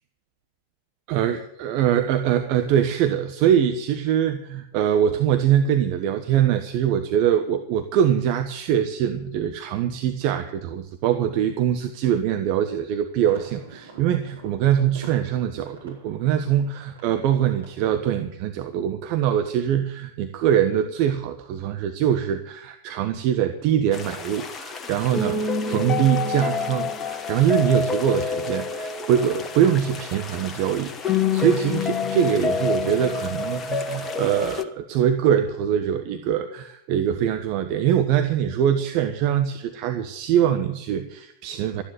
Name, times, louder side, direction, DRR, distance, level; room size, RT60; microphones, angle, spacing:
voice 1, 1.1-41.8, right 9 dB, 45° right, 7 dB, 1.1 m, -23 dB
sound 1, 12.9-17.9, right 4 dB, 70° right, 4.9 m, -46 dB
sound 2, 23.9-34.6, left 5 dB, 20° left, 1.2 m, -28 dB
13.5 x 10.0 x 9.5 m, 0.77 s
figure-of-eight pair, 90°, 0 cm